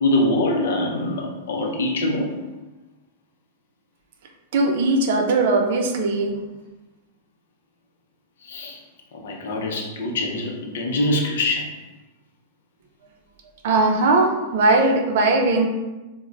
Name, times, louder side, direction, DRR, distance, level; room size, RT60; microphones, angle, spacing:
voice 1, 0.0-2.3 8.5-8.8 9.1-11.7, left 1 dB, 80° left, 1 dB, 0.5 m, -24 dB
voice 2, 4.5-6.4 13.6-15.7, right 2 dB, 70° right, 2 dB, 0.5 m, -19 dB
2.4 x 2.1 x 3.1 m, 1.1 s
hypercardioid pair, 135°, 0 cm